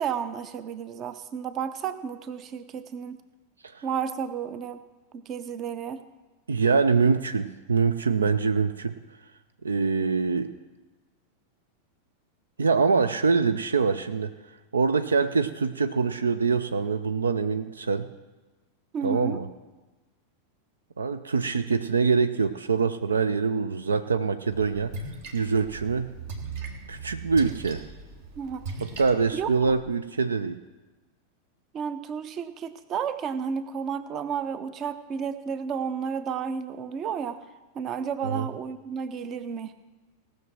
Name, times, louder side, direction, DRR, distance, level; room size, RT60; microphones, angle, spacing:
voice 1, 0.0-3.2 3.8-4.8 5.1-6.1 18.9-19.4 28.4-28.7 29.3-29.5 31.7-37.4 37.7-39.7, right 7 dB, 30° right, 12 dB, 0.7 m, -32 dB
voice 2, 6.5-8.9 9.6-10.5 12.6-14.3 14.7-18.1 19.0-19.5 21.0-24.9 25.3-26.1 26.9-27.8 29.0-30.6 38.2-38.5, right 5 dB, 70° right, 11 dB, 0.5 m, -24 dB
Splash splatter, 24.5-29.8, right 4 dB, 50° right, 1.5 m, -39 dB
17.5 x 6.5 x 6.1 m, 1.2 s
figure-of-eight pair, 90°, 0 cm